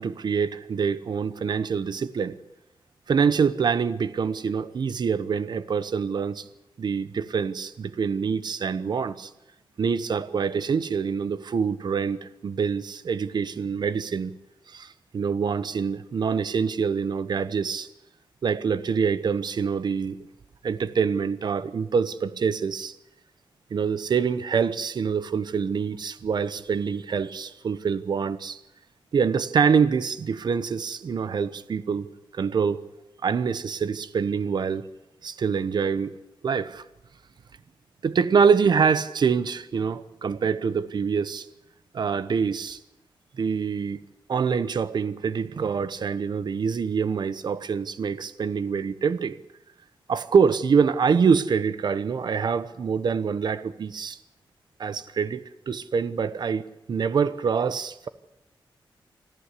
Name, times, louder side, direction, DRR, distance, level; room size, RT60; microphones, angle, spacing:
voice 1, 0.0-2.4 3.1-6.4 6.8-9.3 9.8-14.3 14.7-17.9 18.4-20.2 20.6-22.9 23.7-28.6 29.1-32.1 32.3-32.8 33.2-34.9 35.2-36.1 36.4-36.8 38.0-41.5 41.9-42.8 43.4-44.0 44.3-49.4 50.1-54.2 54.8-58.1, right 6 dB, 55° right, 14 dB, 1.0 m, -25 dB
25.5 x 14.5 x 8.4 m, 0.90 s
wide cardioid pair, 160°, 9 cm